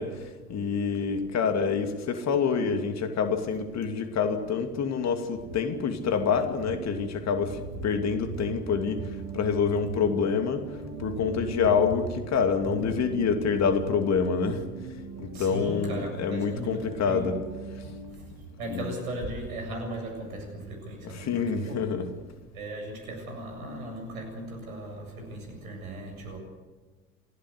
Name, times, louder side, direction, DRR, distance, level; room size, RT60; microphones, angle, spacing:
voice 1, 0.0-10.7 11.0-14.6 15.2-17.4 17.8-17.9 18.7-18.9 21.0-22.1, left 6 dB, 35° left, 7 dB, 2.7 m, -27 dB
sound 1, 6.7-18.2, right 5 dB, 50° right, 2.8 m, -43 dB
voice 2, 8.1-8.5 9.2-9.4 9.8-10.1 11.1-11.4 12.9-13.7 15.3-17.3 17.8-21.9 22.5-26.4, right 1 dB, 70° right, 3 dB, 7.8 m, -38 dB
27.5 x 16.5 x 8.3 m, 1.3 s
figure-of-eight pair, 70°, 44 cm